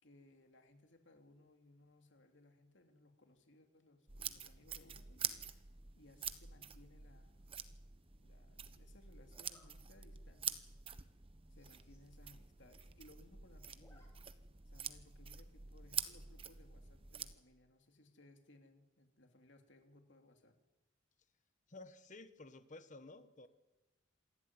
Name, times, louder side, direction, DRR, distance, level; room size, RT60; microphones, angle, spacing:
voice 1, 0.0-7.4 8.2-10.6 11.5-14.1 14.6-20.5, left 1 dB, 65° left, 5 dB, 3.0 m, -64 dB
sound 1, 4.1-17.4, right 8 dB, 30° right, 1.0 m, -47 dB
Zipper (clothing), 7.4-7.8 9.3-9.7 10.3-10.4 10.8-10.9 11.1-11.2 11.5-12.1 12.4-12.5 12.7-13.3 13.6-14.1 14.4-14.5 15.8-16.2, left 1 dB, 15° left, 4.4 m, -70 dB
voice 2, 21.7-23.5, left 2 dB, 40° left, 11 dB, 1.4 m, -54 dB
27.0 x 12.0 x 9.7 m, 1.1 s
head